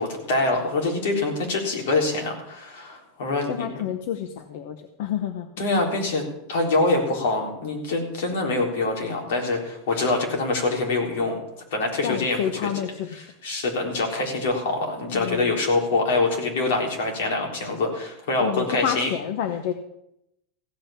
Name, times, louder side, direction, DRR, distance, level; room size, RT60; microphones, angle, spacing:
voice 1, 0.0-3.7 5.6-6.2 6.5-11.4 11.7-12.4 13.2-19.1, left 2 dB, 85° left, 1 dB, 3.8 m, -25 dB
voice 2, 3.5-5.6 12.0-13.3 15.1-15.6 18.4-19.7, left 9 dB, 60° left, 9 dB, 0.9 m, -29 dB
15.5 x 5.7 x 8.7 m, 0.81 s
supercardioid pair, 170°, 0 cm